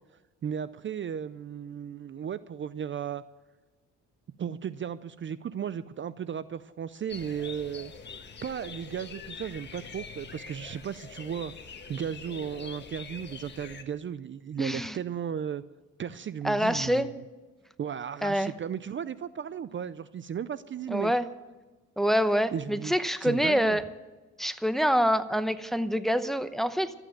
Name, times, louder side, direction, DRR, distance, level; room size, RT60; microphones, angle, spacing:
voice 1, 0.4-3.2 4.4-7.9 8.4-11.5 11.9-15.6 16.0-17.2 17.8-21.1 22.5-22.9 23.2-23.8, right 8 dB, 40° right, 15 dB, 0.5 m, -35 dB
sound 1, 7.1-13.8, left 5 dB, 35° left, 1.6 m, -44 dB
voice 2, 14.6-15.0 16.4-17.1 18.2-18.5 20.9-21.3 22.0-23.8 24.4-26.9, equal, ahead, 11 dB, 0.8 m, -26 dB
13.5 x 8.9 x 9.0 m, 1.2 s
cardioid pair, 90°, 30 cm